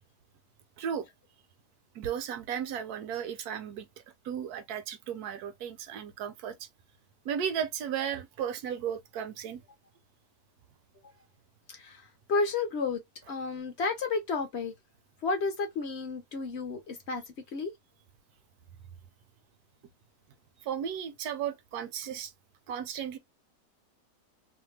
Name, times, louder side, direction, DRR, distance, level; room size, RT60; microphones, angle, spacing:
voice 1, 1.9-3.9 4.2-6.7 7.2-9.6 20.6-22.3 22.7-23.2, right 8 dB, 70° right, 1.0 m, -35 dB
voice 2, 11.7-13.0 13.3-14.7 15.2-17.2 17.5-17.7, left 4 dB, 55° left, 0.7 m, -31 dB
2.8 x 2.1 x 3.1 m
omnidirectional pair, 1.9 m